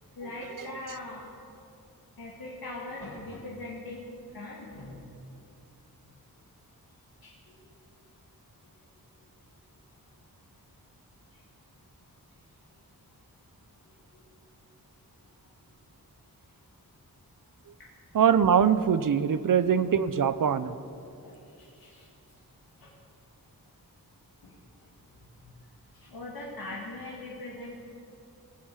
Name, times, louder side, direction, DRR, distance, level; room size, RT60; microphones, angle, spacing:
voice 1, 0.2-1.3 2.2-5.0 7.2-7.8 11.3-11.4 13.8-14.3 15.4-15.5 17.8-17.9 21.2-22.1 22.8-22.9 24.4-27.8, left 2 dB, 70° left, -5 dB, 2.2 m, -42 dB
voice 2, 18.1-20.7, right 7 dB, 60° right, 15 dB, 0.6 m, -23 dB
19.5 x 7.7 x 8.5 m, 2.7 s
wide cardioid pair, 125°, 37 cm